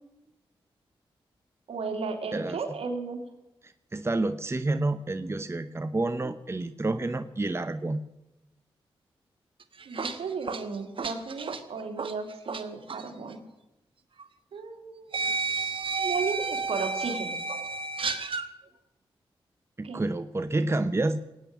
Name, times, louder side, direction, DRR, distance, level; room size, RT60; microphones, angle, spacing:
voice 1, 1.7-3.2 9.9-13.4 14.5-15.5 16.0-17.4 19.8-20.0, right 4 dB, 80° right, 4 dB, 2.3 m, -34 dB
voice 2, 3.6-8.0 19.8-21.2, right 2 dB, 25° right, 11 dB, 0.8 m, -29 dB
sound 1, 9.6-12.6 12.9-13.1 14.2-14.3 15.1-18.5, right 4 dB, 60° right, 1.2 m, -31 dB
19.0 x 9.2 x 7.4 m, 0.94 s
cardioid pair, 50°, 10 cm